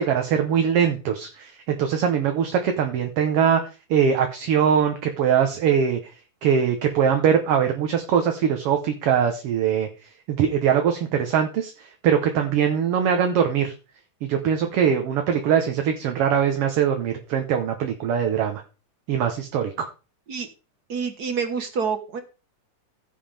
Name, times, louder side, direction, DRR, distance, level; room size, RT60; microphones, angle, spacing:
voice 1, 0.0-3.6 3.9-6.0 6.4-9.9 10.3-13.7 14.2-18.6 19.1-19.9, right 8 dB, 60° right, 5 dB, 1.8 m, -22 dB
voice 2, 20.9-22.2, right 6 dB, 45° right, 7 dB, 1.4 m, -27 dB
15.5 x 7.6 x 3.5 m, 0.33 s
omnidirectional pair, 3.4 m